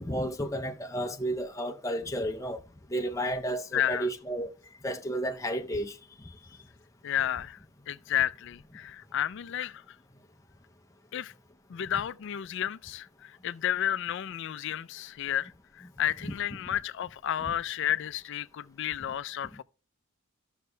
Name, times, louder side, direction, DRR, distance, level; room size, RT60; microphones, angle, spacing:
voice 1, 0.0-2.6 2.9-4.5 4.8-6.3 16.2-16.3, right 1 dB, 15° left, 0.6 m, -32 dB
voice 2, 3.7-4.1 7.0-7.6 7.9-9.8 11.1-11.3 11.7-19.6, left 10 dB, 60° left, 0.4 m, -32 dB
13.5 x 6.4 x 2.2 m
head